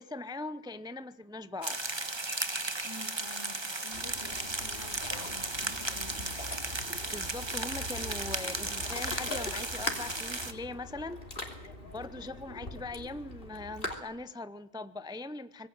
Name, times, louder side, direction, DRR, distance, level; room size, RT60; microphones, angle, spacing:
voice 1, 0.0-1.8 7.1-15.7, left 2 dB, 5° right, 13 dB, 0.6 m, -41 dB
sound 1, 1.6-10.5, right 2 dB, 20° right, 1.5 m, -35 dB
voice 2, 2.8-6.4, left 3 dB, 75° left, 7 dB, 3.0 m, -49 dB
Ocean, 3.9-14.0, left 2 dB, 45° left, 3.4 m, -42 dB
26.0 x 20.0 x 7.9 m, 0.78 s
omnidirectional pair, 1.3 m